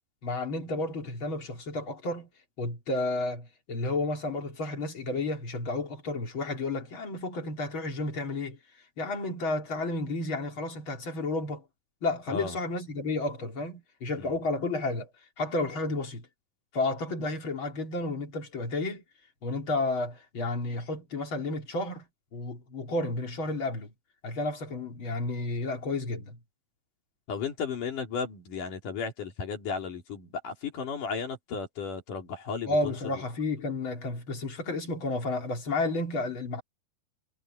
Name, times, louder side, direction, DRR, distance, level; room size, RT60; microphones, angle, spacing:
voice 1, 0.2-2.3 2.6-8.6 9.0-11.6 12.0-15.1 15.4-16.3 16.7-19.0 19.4-22.1 22.3-23.9 24.2-26.4 32.6-36.6, left 2 dB, 35° left, 3.7 m, -31 dB
voice 2, 27.3-32.9, left 5 dB, 65° left, 4.6 m, -34 dB
omnidirectional pair, 4.0 m